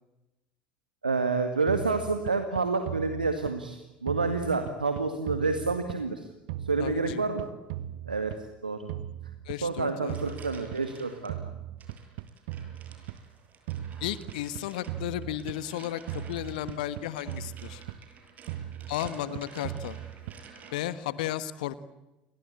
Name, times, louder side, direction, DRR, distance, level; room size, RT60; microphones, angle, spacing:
voice 1, 1.0-6.3 6.6-7.5 8.0-8.3 8.6-8.9 9.6-11.4 19.3-19.4, right 4 dB, 80° right, 8 dB, 2.0 m, -28 dB
sound 1, 1.7-3.8 4.1-6.2 6.5-8.6 8.9-11.0 11.3-13.3 13.7-15.8 16.1-18.2 18.5-20.6, right 12 dB, 60° right, 1.2 m, -39 dB
voice 2, 6.8-7.2 9.4-10.4 14.0-17.8 18.9-20.0 20.7-21.9, left 12 dB, 65° left, 15 dB, 1.3 m, -34 dB
sound 2, 9.9-11.3 11.8-21.0, right 5 dB, 35° right, 8.0 m, -52 dB
30.0 x 23.5 x 8.5 m, 1.0 s
figure-of-eight pair, 70°, 5 cm